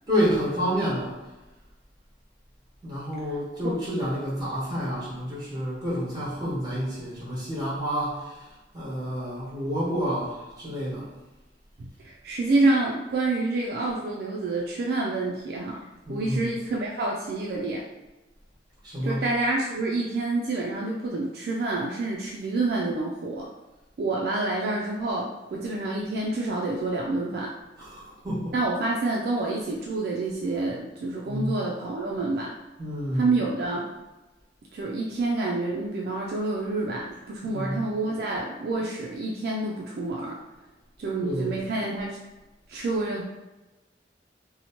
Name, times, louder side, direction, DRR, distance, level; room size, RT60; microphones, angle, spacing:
voice 1, 0.1-1.2 2.8-11.1 16.1-16.5 18.8-19.2 27.8-28.5 31.2-31.5 32.8-33.3 37.4-37.8 41.2-41.6, equal, 20° right, -8 dB, 1.2 m, -29 dB
voice 2, 11.8-15.8 16.1-17.8 19.0-23.5 24.0-27.5 28.5-32.5 33.1-33.9 34.7-40.4 41.0-42.2 42.7-43.2, right 2 dB, 60° right, -2 dB, 0.3 m, -28 dB
2.8 x 2.1 x 2.8 m, 1.1 s
head